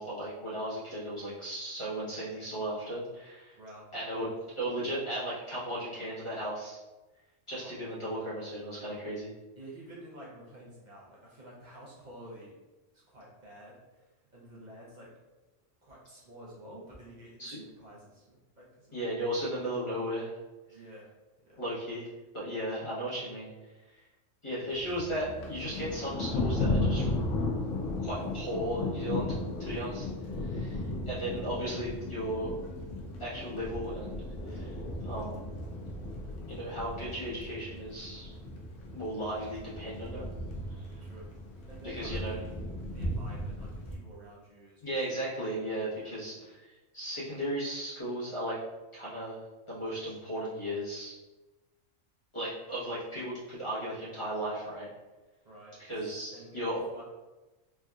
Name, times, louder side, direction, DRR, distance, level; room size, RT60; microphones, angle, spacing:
voice 1, 0.0-3.6 3.9-4.3 4.5-6.8 7.5-9.3 17.4-17.6 18.9-20.3 20.7-20.8 21.6-22.1 22.3-23.5 23.9-24.0 24.4-27.1 28.0-30.0 30.4-32.5 33.2-34.8 35.0-35.5 36.5-38.3 38.9-40.3 40.8-41.0 41.8-42.3 44.8-48.6 48.9-49.4 49.7-51.1 52.3-54.9 55.8-57.0, right 1 dB, 25° left, -10 dB, 1.0 m, -36 dB
voice 2, 3.5-4.2 7.6-8.0 9.6-12.6 12.9-15.1 15.8-19.0 20.7-21.1 21.4-21.6 24.6-24.8 30.5-30.6 41.0-41.3 41.7-42.6 42.9-45.3 45.9-46.1 55.4-57.0, right 1 dB, 45° right, -6 dB, 0.7 m, -50 dB
Thunder, 24.7-44.0, left 2 dB, 75° left, 0.9 m, -35 dB
3.3 x 2.6 x 2.3 m, 1.1 s
omnidirectional pair, 1.3 m